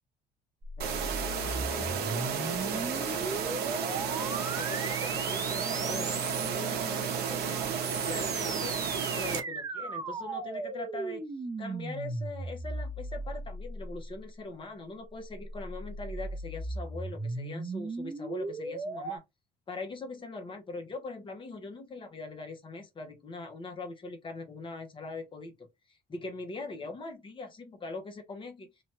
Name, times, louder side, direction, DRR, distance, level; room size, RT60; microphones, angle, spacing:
sound 1, 0.6-6.7 7.6-14.2 15.3-19.2, right 3 dB, 20° right, 0.5 m, -37 dB
voice 1, 0.8-4.2 4.4-11.2 11.6-19.2 19.7-28.7, left 3 dB, 30° left, 0.8 m, -42 dB
sound 2, 0.8-9.4, right 7 dB, 70° right, 0.7 m, -32 dB
2.8 x 2.2 x 2.9 m
cardioid pair, 110°, 17 cm